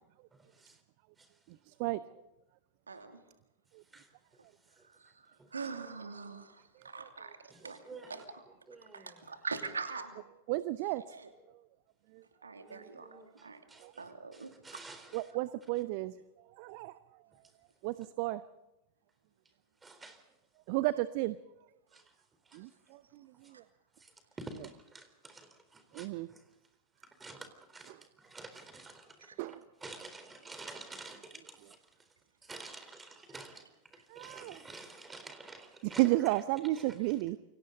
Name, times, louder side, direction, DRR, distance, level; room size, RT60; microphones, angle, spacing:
voice 1, 0.3-0.8 1.2-1.3 3.9-4.1 4.8-4.9 5.4-5.5 7.5-8.3 8.7-9.3 12.6-15.3 19.8-20.2 21.9-22.1 22.5-22.6 24.0-26.5 27.0-32.1 32.4-36.3 36.7-37.2, right 3 dB, 15° right, 8 dB, 4.0 m, -51 dB
voice 2, 2.9-3.2 5.0-5.3 5.5-7.4 7.6-7.8 8.1-8.2 8.9-10.2 11.1-11.3 12.4-13.1 13.4-13.6 14.0-14.5 29.2-29.3, right 4 dB, 75° right, 6 dB, 2.7 m, -42 dB
voice 3, 10.5-11.0 13.8-13.9 15.1-16.1 16.6-16.9 17.8-18.4 20.7-21.4 22.5-22.7 25.9-26.3 29.4-29.6 34.1-34.5 36.0-37.4, right 18 dB, 45° right, 15 dB, 0.7 m, -32 dB
29.0 x 24.0 x 4.0 m, 0.92 s
figure-of-eight pair, 90°, 0 cm